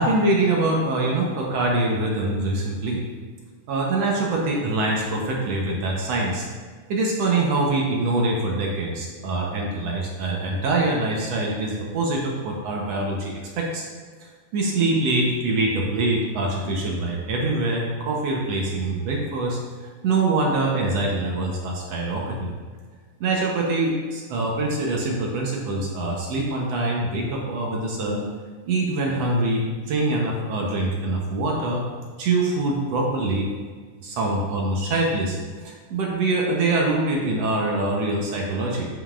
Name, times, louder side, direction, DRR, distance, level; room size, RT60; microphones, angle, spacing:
voice 1, 0.0-3.0 3.7-6.5 6.9-13.9 14.2-22.5 23.2-28.2 28.7-31.8 32.2-33.5 34.0-35.4 35.6-38.9, right 2 dB, 65° right, -1 dB, 1.8 m, -24 dB
11.0 x 5.1 x 2.5 m, 1.5 s
omnidirectional pair, 3.6 m